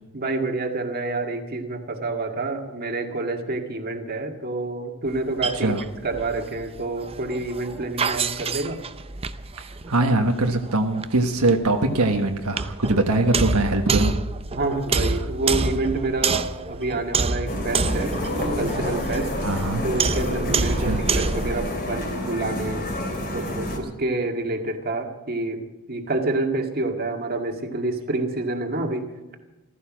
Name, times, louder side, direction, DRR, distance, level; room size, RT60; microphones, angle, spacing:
voice 1, 0.1-5.8 6.0-8.8 14.5-18.2 18.6-19.3 19.8-25.6 25.9-29.1, right 2 dB, 45° right, 3 dB, 1.9 m, -28 dB
sound 1, 5.1-21.7, right 4 dB, 25° right, 0.6 m, -28 dB
voice 2, 9.6-14.1 19.4-19.9 20.8-21.0, right 2 dB, 85° right, 3 dB, 1.4 m, -22 dB
sound 2, 17.5-23.8, left 1 dB, 45° left, 3.4 m, -29 dB
14.5 x 14.0 x 6.2 m, 1.1 s
head